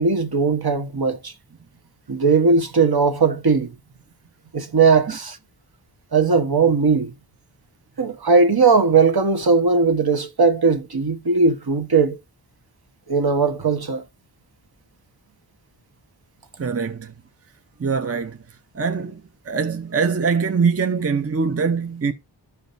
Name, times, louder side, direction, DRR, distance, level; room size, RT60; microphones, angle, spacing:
voice 1, 0.0-1.3 2.1-3.7 4.5-5.4 6.1-7.1 8.0-12.2 13.1-14.0, right 4 dB, 55° right, 1.3 m, -18 dB
voice 2, 16.6-17.1 17.8-22.1, right 5 dB, 30° right, 0.7 m, -23 dB
13.0 x 5.0 x 2.6 m
wide cardioid pair, 65°, 45 cm